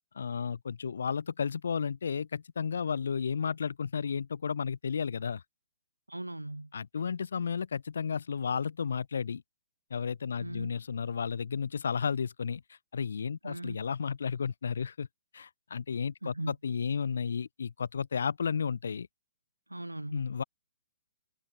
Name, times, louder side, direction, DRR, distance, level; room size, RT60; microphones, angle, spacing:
voice 1, 0.1-5.4 6.7-9.4 9.9-12.6 12.9-15.1 15.3-19.1 20.1-20.4, left 6 dB, 60° left, 0.7 m, -33 dB
voice 2, 6.1-6.7 10.4-10.8 13.4-13.8 16.2-16.6 19.7-20.3, right 1 dB, 85° right, 0.5 m, -39 dB
figure-of-eight pair, 125°, 0 cm